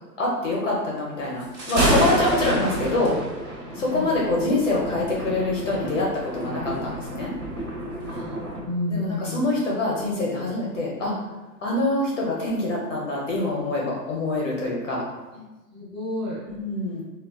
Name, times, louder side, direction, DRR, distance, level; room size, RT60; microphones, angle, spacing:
voice 1, 0.2-3.2 3.7-7.3 8.9-11.1 11.6-15.0 16.5-17.0, left 2 dB, 50° left, -4 dB, 0.6 m, -25 dB
Thunder, 1.4-8.6, right 1 dB, 45° right, 1.0 m, -28 dB
voice 2, 3.7-4.1 8.0-9.4 15.3-15.4 15.7-16.4, left 2 dB, 15° right, -12 dB, 1.0 m, -31 dB
3.4 x 2.2 x 2.2 m, 1.1 s
hypercardioid pair, 175°, 49 cm